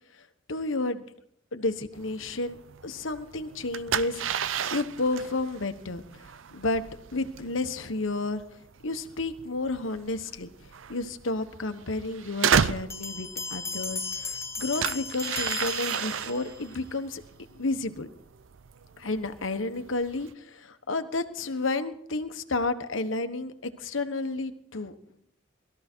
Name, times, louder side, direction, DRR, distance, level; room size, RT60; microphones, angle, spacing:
voice 1, 0.5-1.0 1.5-2.6 2.8-6.0 6.5-6.8 7.1-8.4 8.8-10.5 10.9-17.2 17.5-18.1 19.0-24.9, left 2 dB, 85° left, 9 dB, 1.2 m, -31 dB
sound 1, 1.9-20.3, right 7 dB, 80° right, 0.6 m, -34 dB
Bell, 12.9-16.7, left 4 dB, 15° left, 0.7 m, -36 dB
20.5 x 13.5 x 4.5 m, 0.71 s
head